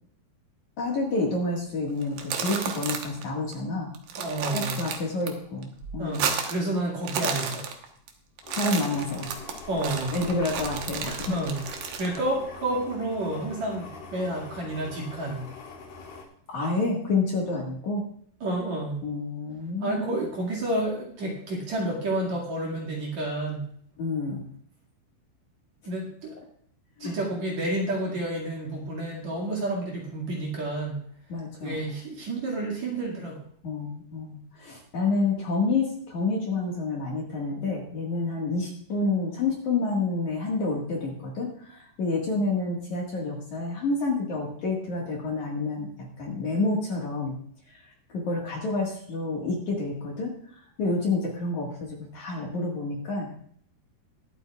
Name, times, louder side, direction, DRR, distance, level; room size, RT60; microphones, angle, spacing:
voice 1, 0.8-3.9 4.5-6.3 8.6-9.3 10.1-11.4 16.5-18.0 19.0-20.0 24.0-24.5 27.0-27.1 31.3-31.9 33.6-47.4 47.7-53.4, left 3 dB, 55° left, -1 dB, 2.7 m, -29 dB
sound 1, 2.0-3.2 3.5-3.6 3.9-5.3 5.6-6.7 7.0-8.1 8.4-12.2, right 7 dB, 65° right, 2.6 m, -32 dB
voice 2, 4.2-4.8 6.0-7.7 9.7-10.1 11.3-15.5 18.4-19.0 19.8-23.7 25.9-26.4 27.0-31.0 31.6-33.4, right 1 dB, 50° right, -3 dB, 3.0 m, -30 dB
sound 2, 8.4-16.2, left 3 dB, 70° left, 4.1 m, -43 dB
22.5 x 8.5 x 2.4 m, 0.62 s
omnidirectional pair, 4.8 m